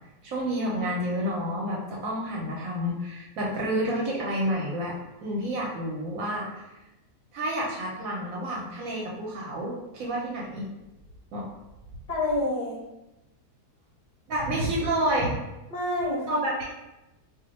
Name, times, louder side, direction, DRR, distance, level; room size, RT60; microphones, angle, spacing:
voice 1, 0.2-4.9 5.2-6.7 7.3-10.7 11.3-11.5 14.3-15.3 16.3-16.6, right 1 dB, 70° right, -3 dB, 0.9 m, -29 dB
voice 2, 12.1-12.8 15.7-16.6, left 1 dB, 50° left, -4 dB, 0.6 m, -28 dB
2.5 x 2.1 x 3.9 m, 0.97 s
omnidirectional pair, 1.7 m